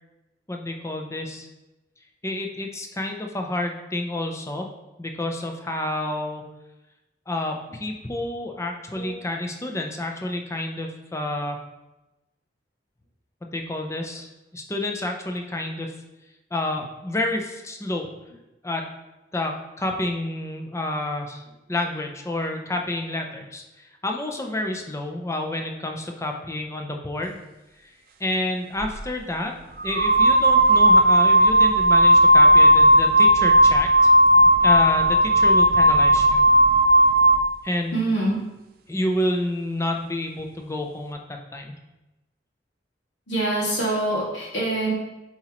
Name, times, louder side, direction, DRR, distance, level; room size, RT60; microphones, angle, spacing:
voice 1, 0.5-1.5 2.2-4.7 5.0-6.5 7.3-11.6 13.5-15.9 16.5-18.1 18.6-18.9 19.3-21.4 21.7-27.4 27.8-27.9 28.2-29.5 29.8-36.4 37.6-38.0 38.9-41.7, left 1 dB, 15° left, 2 dB, 0.6 m, -29 dB
sound 1, 28.8-29.0 29.8-37.5, right 1 dB, 55° right, 0.5 m, -15 dB
voice 2, 37.9-38.4 43.3-44.9, right 2 dB, 85° left, -5 dB, 2.2 m, -25 dB
7.7 x 4.3 x 3.0 m, 1.0 s
head